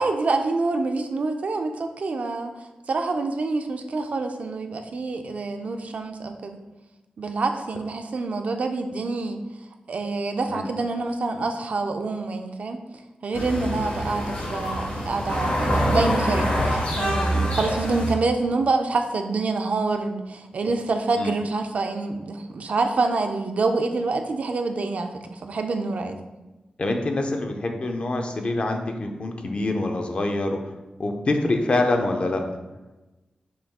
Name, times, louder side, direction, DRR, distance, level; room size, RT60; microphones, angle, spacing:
voice 1, 0.0-2.5 2.9-6.6 7.2-9.4 9.9-12.8 13.2-26.2, right 3 dB, 60° right, 5 dB, 0.4 m, -26 dB
sound 1, 13.3-18.1, equal, 75° left, 1.5 m, -25 dB
voice 2, 26.8-30.7 31.0-32.6, left 2 dB, 45° left, 4 dB, 0.5 m, -25 dB
5.9 x 2.3 x 3.5 m, 1.1 s
wide cardioid pair, 115°, 3 cm